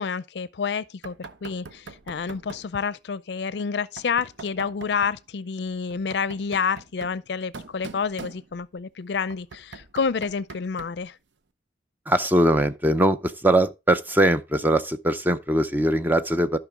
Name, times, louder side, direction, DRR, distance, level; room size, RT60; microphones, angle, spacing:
voice 1, 0.0-11.2, left 5 dB, 70° left, 0.5 m, -29 dB
Knock, 1.0-2.8 4.0-5.2 5.9-8.8 9.3-11.1, right 4 dB, 85° right, 0.7 m, -43 dB
voice 2, 12.1-16.6, right 1 dB, 10° right, 0.5 m, -21 dB
12.0 x 5.8 x 3.6 m
head